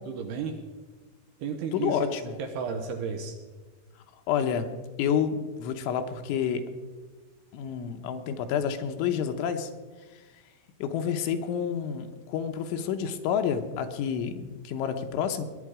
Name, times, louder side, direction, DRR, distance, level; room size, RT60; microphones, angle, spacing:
voice 1, 0.1-0.6 1.4-2.1 2.4-3.4, right 6 dB, 70° right, 5 dB, 2.6 m, -33 dB
voice 2, 1.7-2.4 4.3-4.7 5.0-6.6 7.5-9.7 10.8-15.5, left 8 dB, 80° left, 7 dB, 3.2 m, -29 dB
20.0 x 10.0 x 4.9 m, 1.3 s
omnidirectional pair, 5.6 m